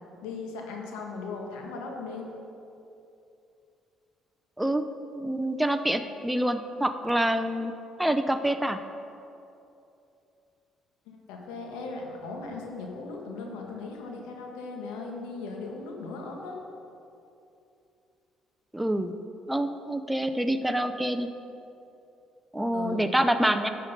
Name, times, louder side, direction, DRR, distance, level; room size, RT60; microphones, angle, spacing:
voice 1, 0.2-2.3 11.1-16.6 22.7-23.0, left 3 dB, 85° left, 1 dB, 1.5 m, -38 dB
voice 2, 5.1-7.7 8.0-8.8 18.7-19.1 19.5-21.3 22.5-23.7, right 1 dB, 5° right, 8 dB, 0.6 m, -26 dB
11.0 x 6.6 x 5.3 m, 2.7 s
supercardioid pair, 65°, 0 cm